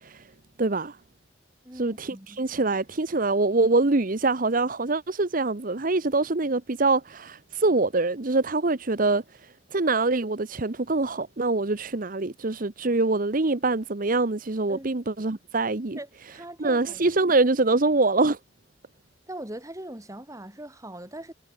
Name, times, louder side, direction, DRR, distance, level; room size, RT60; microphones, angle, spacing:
voice 1, 0.6-1.0 1.8-9.2 9.7-16.0 16.6-18.4, right 3 dB, 45° right, 1.0 m, -24 dB
voice 2, 1.6-2.4 14.7-14.9 16.0-17.1 19.3-21.3, right 1 dB, 15° right, 3.6 m, -41 dB
head